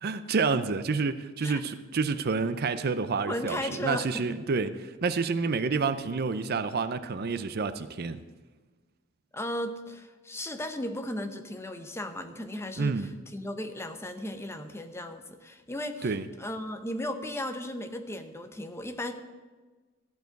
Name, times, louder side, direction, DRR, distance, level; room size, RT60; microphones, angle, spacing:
voice 1, 0.0-8.2 12.8-13.1 16.0-16.3, right 4 dB, 50° right, 12 dB, 0.5 m, -29 dB
voice 2, 3.3-4.4 9.3-16.1 16.4-19.1, left 1 dB, 15° left, 7 dB, 0.7 m, -36 dB
14.0 x 4.8 x 9.1 m, 1.3 s
head